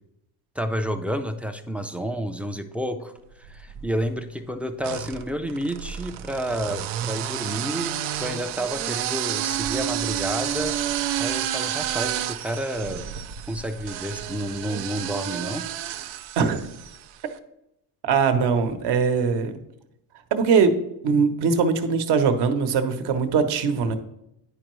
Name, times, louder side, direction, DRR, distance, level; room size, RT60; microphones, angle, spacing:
voice 1, 0.6-10.7 11.2-13.1 13.5-15.6, equal, 5° right, 7 dB, 0.3 m, -30 dB
sound 1, 3.4-4.1 4.8-17.1, right 11 dB, 85° right, 0.6 m, -30 dB
voice 2, 18.0-19.6 20.3-20.8 21.0-24.0, right 5 dB, 60° right, 8 dB, 0.9 m, -21 dB
10.0 x 4.4 x 3.1 m, 0.85 s
cardioid pair, 100°, 45 cm